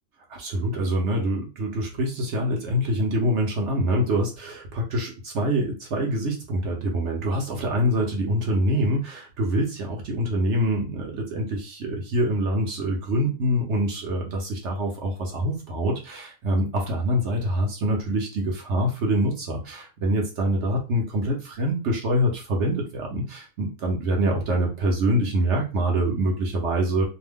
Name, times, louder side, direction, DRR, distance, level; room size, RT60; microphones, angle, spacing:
voice 1, 0.3-27.0, equal, 60° right, 0 dB, 0.9 m, -25 dB
2.6 x 2.1 x 3.4 m, 0.31 s
omnidirectional pair, 1.6 m